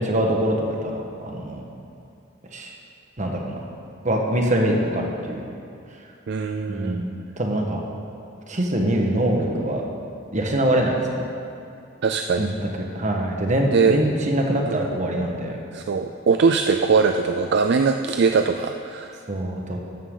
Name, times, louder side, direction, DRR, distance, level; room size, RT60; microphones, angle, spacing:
voice 1, 0.0-1.6 2.5-2.7 3.2-3.6 4.0-5.4 6.7-7.8 8.5-9.8 10.3-11.2 12.4-15.6 19.3-19.8, right 1 dB, 40° right, 1 dB, 1.4 m, -24 dB
voice 2, 6.3-7.0 12.0-12.5 13.7-14.0 14.7-14.8 15.7-19.2, right 5 dB, 60° right, 6 dB, 0.4 m, -21 dB
13.5 x 11.0 x 3.9 m, 2.5 s
head